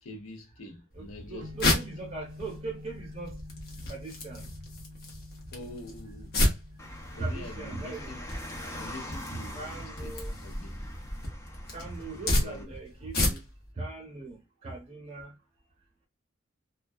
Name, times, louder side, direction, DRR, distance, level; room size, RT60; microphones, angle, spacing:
voice 1, 0.0-1.8 5.5-6.4 7.1-8.3 8.8-10.9 12.1-12.8, left 2 dB, 90° left, 0.7 m, -45 dB
sound 1, 0.9-13.7, left 1 dB, 50° left, 0.8 m, -33 dB
voice 2, 1.0-3.4 3.9-4.4 6.4-6.5 7.2-8.3 9.5-10.4 11.7-13.4 13.8-15.3, right 3 dB, 30° right, 0.6 m, -40 dB
sound 2, 1.4-13.5, left 2 dB, 70° right, 0.7 m, -50 dB
Car, 6.8-12.6, equal, 15° left, 0.4 m, -42 dB
2.2 x 2.2 x 2.5 m
head